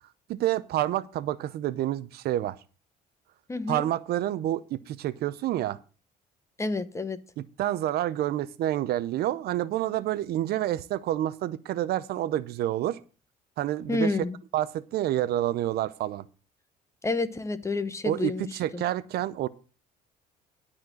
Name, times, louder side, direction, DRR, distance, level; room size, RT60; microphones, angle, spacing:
voice 1, 0.3-2.6 3.7-5.8 7.6-13.0 13.6-14.2 14.5-16.3 18.0-19.5, right 13 dB, 70° right, 0.7 m, -28 dB
voice 2, 3.5-3.9 6.6-7.2 13.9-14.4 17.0-18.8, left 3 dB, 15° left, 1.0 m, -29 dB
12.0 x 4.4 x 7.6 m
cardioid pair, 110°, 17 cm